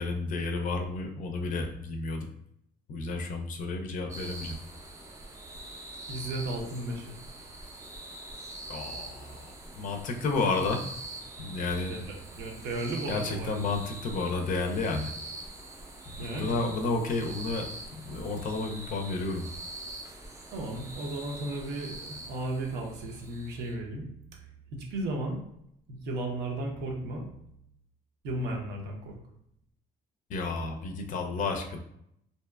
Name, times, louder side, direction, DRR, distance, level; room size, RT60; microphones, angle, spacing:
voice 1, 0.0-2.3 2.9-4.6 8.7-10.9 11.4-11.9 13.1-15.1 16.1-17.7 18.0-19.5 30.3-31.8, left 3 dB, 50° left, 4 dB, 0.4 m, -31 dB
sound 1, 4.1-23.7, right 2 dB, 20° right, 0.5 m, -44 dB
voice 2, 6.1-7.2 11.9-12.0 12.3-13.6 16.2-16.6 20.5-24.1 24.7-25.4 25.9-27.2 28.2-29.2, right 2 dB, 80° right, 1 dB, 0.7 m, -34 dB
2.7 x 2.2 x 2.2 m, 0.74 s
cardioid pair, 110°, 17 cm